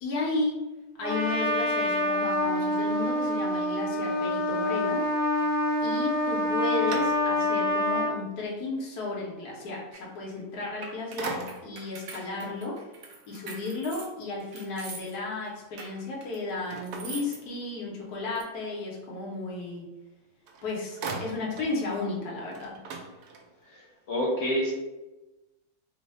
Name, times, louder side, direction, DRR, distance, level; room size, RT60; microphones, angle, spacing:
voice 1, 0.0-0.6 1.0-5.1 5.8-12.8 13.3-19.8 20.6-22.8, left 3 dB, 80° left, -3 dB, 1.3 m, -33 dB
Trumpet, 1.0-8.1, left 1 dB, 35° left, 0.6 m, -26 dB
sound 1, 6.2-7.7 8.2-8.3 10.5-10.8 11.2-11.9 16.7-18.0 20.1-20.2 20.5-21.8 22.1-22.2 22.5-23.8, right 4 dB, 85° right, 1.1 m, -40 dB
sound 2, 9.9-10.0 10.6-15.2 15.5-17.4 18.4-18.5, right 4 dB, 65° right, 1.0 m, -43 dB
voice 2, 23.7-24.7, equal, 60° left, -3 dB, 1.0 m, -28 dB
3.2 x 2.0 x 4.1 m, 1.1 s
omnidirectional pair, 1.6 m